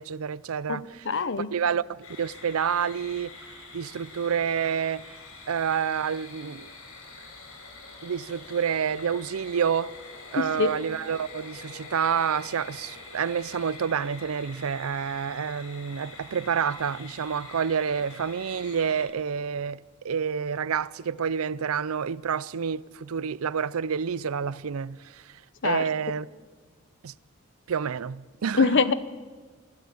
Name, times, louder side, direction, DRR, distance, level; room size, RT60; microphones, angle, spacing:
voice 1, 0.0-1.2 1.5-5.2 5.5-6.7 8.0-9.9 10.3-26.3 27.0-27.1 27.7-28.8, right 7 dB, 90° right, 0.5 m, -29 dB
voice 2, 1.1-1.5 10.4-10.7 25.6-25.8 28.6-28.9, left 4 dB, 60° left, 0.9 m, -23 dB
sound 1, 2.0-19.0, left 3 dB, 80° left, 5.0 m, -45 dB
25.5 x 13.0 x 8.6 m
head